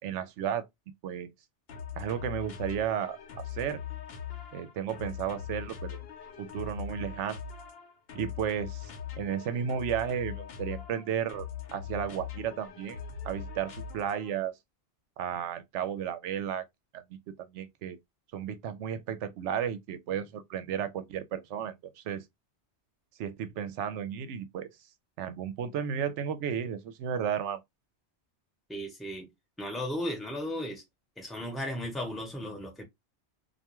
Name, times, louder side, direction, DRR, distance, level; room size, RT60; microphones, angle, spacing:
voice 1, 0.0-0.6 1.0-1.3 2.0-3.2 3.5-3.8 4.5-6.0 6.4-7.4 8.1-8.9 9.2-11.5 11.7-13.0 13.2-14.5 15.2-16.6 17.1-18.0 18.3-22.2 23.2-24.7 25.2-27.6, right 8 dB, 80° right, 0.9 m, -33 dB
sound 1, 1.7-14.4, left 8 dB, 60° left, 0.9 m, -41 dB
voice 2, 28.7-29.3 29.6-30.8 31.2-32.8, left 1 dB, ahead, 0.7 m, -35 dB
2.4 x 2.2 x 2.9 m
omnidirectional pair, 1.2 m